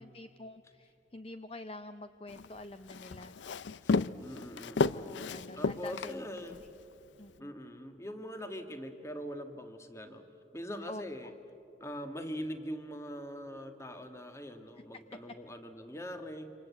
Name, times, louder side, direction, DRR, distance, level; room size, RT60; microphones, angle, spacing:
voice 1, 0.0-3.4 4.9-6.7 7.2-7.5 10.9-11.0 14.7-15.2, left 2 dB, 30° left, 10 dB, 0.6 m, -47 dB
Walk footsteps, 2.3-6.7, left 4 dB, 85° left, 0.5 m, -33 dB
voice 2, 3.8-6.6 7.4-10.3 10.5-11.3 11.8-16.5, equal, 15° left, 7 dB, 1.5 m, -42 dB
28.0 x 25.5 x 8.3 m, 3.0 s
head